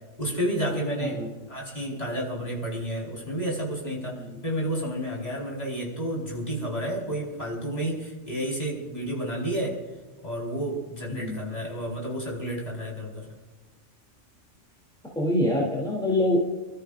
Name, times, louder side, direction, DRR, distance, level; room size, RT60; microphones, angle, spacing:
voice 1, 0.2-1.2 1.5-9.7 10.2-13.3, right 1 dB, 35° left, -3 dB, 5.0 m, -31 dB
voice 2, 15.1-16.4, left 1 dB, 5° left, -4 dB, 3.1 m, -25 dB
30.0 x 13.5 x 2.6 m, 1.2 s
omnidirectional pair, 1.3 m